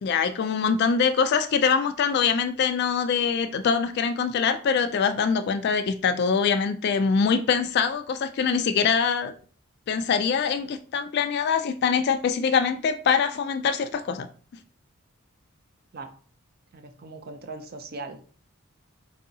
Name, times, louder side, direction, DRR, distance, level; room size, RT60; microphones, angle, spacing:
voice 1, 0.0-9.3 9.9-14.3, left 6 dB, 50° left, 10 dB, 0.3 m, -24 dB
voice 2, 16.7-18.2, right 3 dB, 45° right, 6 dB, 0.5 m, -39 dB
4.6 x 2.6 x 2.7 m, 0.42 s
head